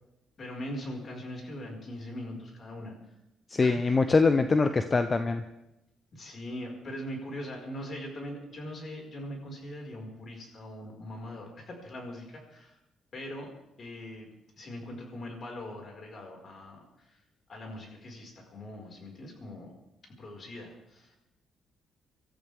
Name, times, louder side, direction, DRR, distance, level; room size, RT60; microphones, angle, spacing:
voice 1, 0.4-2.9 3.6-4.2 6.1-12.8 13.1-13.5 13.8-14.3 14.6-17.2 17.5-19.7 20.2-21.2, left 1 dB, 45° left, 0 dB, 5.2 m, -41 dB
voice 2, 3.5-5.4, left 4 dB, 30° left, 9 dB, 0.8 m, -23 dB
25.0 x 14.0 x 3.6 m, 0.90 s
cardioid pair, 90°, 0 cm